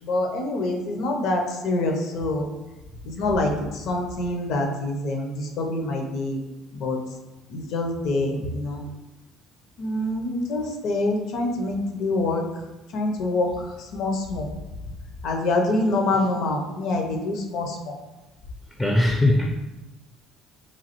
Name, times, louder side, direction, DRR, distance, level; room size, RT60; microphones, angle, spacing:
voice 1, 0.0-2.5 3.0-6.4 6.7-7.0 7.5-8.8 9.8-12.6 12.9-14.5 15.2-18.0, left 2 dB, 70° left, 3 dB, 0.5 m, -26 dB
voice 2, 18.8-19.6, left 1 dB, 5° left, 1 dB, 0.4 m, -20 dB
3.0 x 2.3 x 2.9 m, 1.1 s
supercardioid pair, 75°, 0 cm